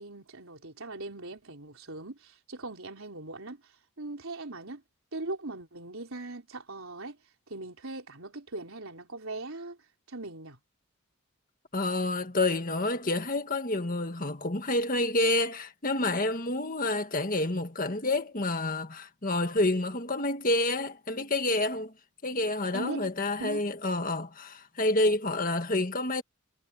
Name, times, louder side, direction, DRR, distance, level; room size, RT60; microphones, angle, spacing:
voice 1, 0.0-3.6 4.0-4.8 5.1-7.2 7.5-9.8 10.1-10.6 22.7-23.1 23.4-23.6, right 2 dB, 70° right, 3.8 m, -40 dB
voice 2, 11.7-21.9 22.2-26.2, left 2 dB, 40° left, 1.8 m, -28 dB
head